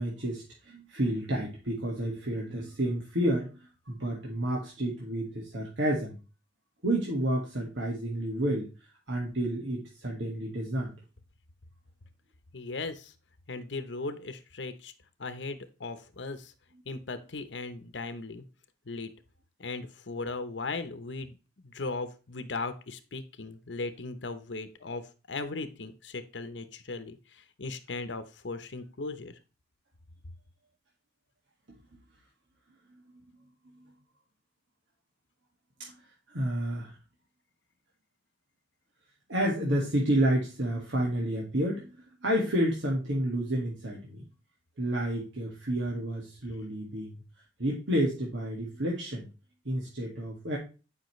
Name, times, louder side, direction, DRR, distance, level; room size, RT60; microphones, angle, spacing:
voice 1, 0.0-6.2 6.8-8.7 9.1-10.9 31.7-31.8 35.8-35.9 36.3-36.9 39.3-41.9 42.2-44.2 44.8-47.2 47.6-49.3 49.7-50.6, right 1 dB, 85° right, -2 dB, 2.0 m, -30 dB
voice 2, 12.5-13.1 13.5-14.9 15.2-16.5 16.9-18.4 18.9-19.1 19.6-29.4, left 3 dB, 75° left, 10 dB, 0.9 m, -38 dB
10.5 x 5.7 x 3.2 m, 0.33 s
head